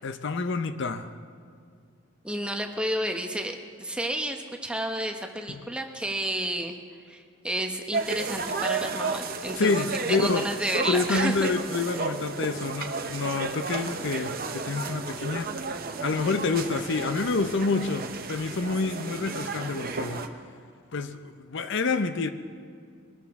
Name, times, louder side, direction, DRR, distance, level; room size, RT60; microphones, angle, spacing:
voice 1, 0.0-1.1 5.5-5.6 9.5-10.5 10.9-15.6 16.0-20.3 20.9-22.3, left 4 dB, 60° left, 0.6 m, -28 dB
voice 2, 2.2-6.7 7.1-11.5, right 1 dB, 5° right, 0.9 m, -31 dB
sound 1, 7.9-20.3, right 4 dB, 45° right, 0.8 m, -33 dB
22.5 x 13.0 x 3.6 m
head